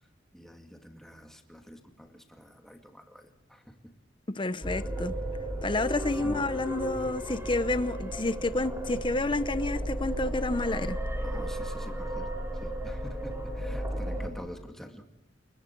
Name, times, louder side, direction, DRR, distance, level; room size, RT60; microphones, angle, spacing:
voice 1, 0.3-3.9 6.2-6.5 11.2-15.1, equal, ahead, 2.2 m, -46 dB
voice 2, 4.3-5.1 5.6-11.0, left 2 dB, 25° left, 0.9 m, -29 dB
sound 1, 4.6-14.3, right 1 dB, 15° right, 3.8 m, -34 dB
29.0 x 22.5 x 4.6 m
head